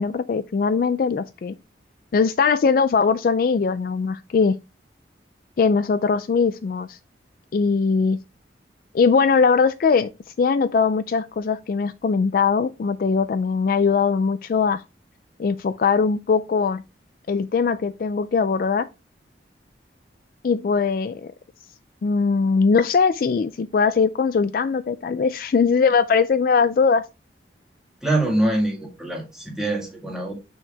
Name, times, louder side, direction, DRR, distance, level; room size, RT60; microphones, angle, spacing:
voice 1, 0.0-1.5 2.1-4.6 5.6-7.0 7.5-8.2 8.9-10.1 10.4-14.8 15.4-16.8 17.3-18.9 20.4-21.3 22.0-27.1, left 5 dB, 50° left, 0.3 m, -20 dB
voice 2, 28.0-30.3, right 1 dB, 5° right, 1.9 m, -24 dB
6.2 x 4.6 x 3.3 m
head